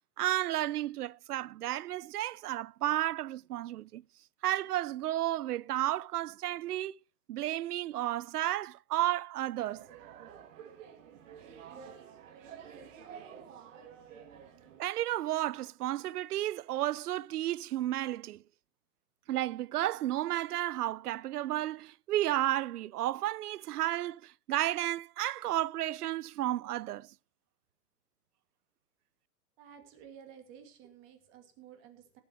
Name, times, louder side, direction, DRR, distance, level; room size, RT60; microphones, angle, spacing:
voice 1, 0.2-4.0 4.4-7.0 7.3-10.3 14.8-18.4 19.3-27.1, right 14 dB, 85° right, 0.6 m, -32 dB
sound 1, 9.7-14.8, right 7 dB, 55° right, 3.1 m, -50 dB
voice 2, 29.6-32.2, right 8 dB, 25° right, 2.5 m, -53 dB
17.5 x 8.2 x 4.6 m
hypercardioid pair, 160°, 45 cm